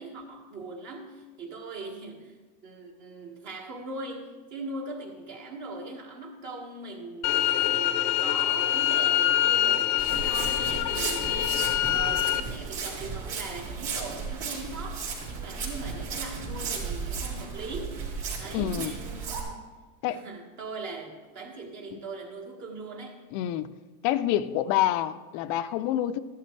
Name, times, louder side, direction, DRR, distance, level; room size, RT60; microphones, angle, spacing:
voice 1, 0.0-2.4 2.6-18.0 18.4-19.8 20.1-23.2, right 2 dB, 40° right, 0 dB, 1.8 m, -40 dB
sound 1, 7.2-12.4, left 13 dB, 80° left, 0.8 m, -25 dB
Walk footsteps, 10.0-19.4, right 5 dB, 55° right, 3.6 m, -35 dB
voice 2, 18.5-18.9 20.0-20.2 21.9-22.0 23.3-23.7 24.0-26.2, left 12 dB, 45° left, 12 dB, 0.5 m, -27 dB
14.5 x 11.5 x 3.3 m, 1.3 s
supercardioid pair, 140°, 45 cm